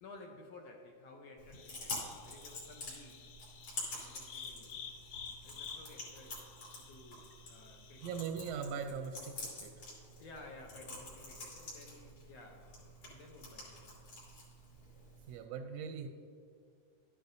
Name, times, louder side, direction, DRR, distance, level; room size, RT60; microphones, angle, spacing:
voice 1, 0.0-3.3 3.9-4.8 5.4-6.4 6.8-8.1 10.2-12.8 13.1-14.2, left 2 dB, 70° left, 1 dB, 1.8 m, -55 dB
Chewing mastication, 1.4-15.4, left 2 dB, 50° left, 3.8 m, -48 dB
sound 1, 1.5-8.2, left 7 dB, 85° left, 2.2 m, -51 dB
voice 2, 8.0-9.7 15.3-16.1, right 6 dB, 75° right, 5 dB, 1.5 m, -40 dB
12.0 x 10.5 x 2.7 m, 2.3 s
omnidirectional pair, 3.4 m